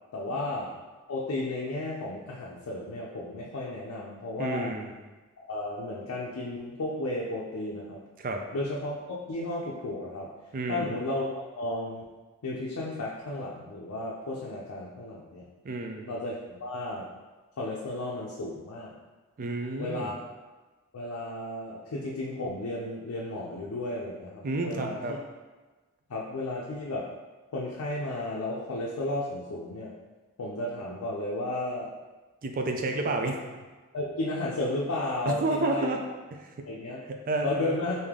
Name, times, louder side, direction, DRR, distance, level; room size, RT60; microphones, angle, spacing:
voice 1, 0.1-0.8 1.1-4.7 5.5-8.0 8.5-10.3 10.7-12.1 12.4-15.4 16.1-17.1 17.6-18.9 19.8-20.2 20.9-25.0 26.1-27.1 27.5-29.9 30.4-31.9 33.0-33.2 33.9-36.0 36.7-37.0 37.4-38.1, left 2 dB, 85° left, -4 dB, 0.5 m, -33 dB
voice 2, 4.4-4.9 8.2-8.4 10.5-11.0 15.6-16.1 19.4-20.1 24.4-25.2 32.4-33.4 35.3-36.0 36.3-36.7 37.1-37.8, right 2 dB, 40° right, 3 dB, 0.4 m, -30 dB
3.3 x 2.6 x 3.6 m, 1.2 s
head